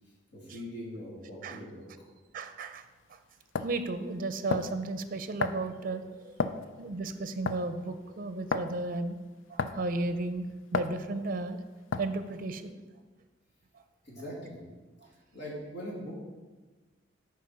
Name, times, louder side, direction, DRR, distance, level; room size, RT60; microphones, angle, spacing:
voice 1, 0.3-1.9 14.0-14.7 15.3-16.1, equal, 60° left, -4 dB, 2.8 m, -41 dB
voice 2, 2.3-2.8 3.1-3.2 3.6-6.3 6.8-9.2 9.5-11.6 12.0-12.7, right 2 dB, 50° right, 10 dB, 0.5 m, -34 dB
sound 1, 2.8-2.9 3.5-3.8 4.5-4.8 5.4-5.7 6.4-6.7 7.5-7.7 8.5-8.7 9.6-9.9 10.7-11.0 11.9-12.2, left 5 dB, 80° left, 0.5 m, -31 dB
8.5 x 4.8 x 5.8 m, 1.3 s
head